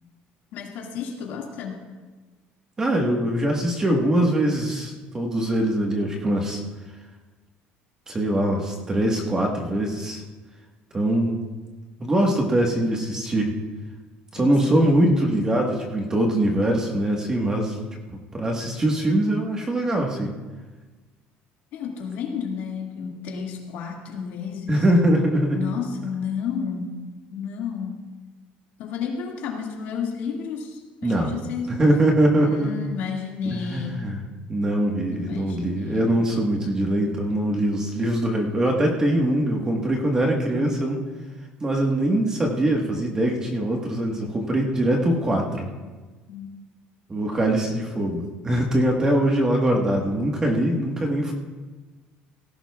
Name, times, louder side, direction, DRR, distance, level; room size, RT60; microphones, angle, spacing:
voice 1, 0.5-1.8 14.4-14.6 21.7-24.8 25.5-27.0 27.3-28.0 28.8-31.9 32.3-34.1 35.1-36.2 46.3-46.5, left 6 dB, 65° left, 0 dB, 2.0 m, -32 dB
voice 2, 2.8-6.6 8.1-10.2 10.9-11.4 12.0-13.5 14.3-17.8 18.1-20.3 24.7-25.7 31.0-31.3 31.7-32.8 33.4-34.2 34.5-41.0 41.6-45.7 47.1-51.3, right 1 dB, 20° right, 1 dB, 1.4 m, -22 dB
18.0 x 15.5 x 2.4 m, 1.3 s
cardioid pair, 155°, 4 cm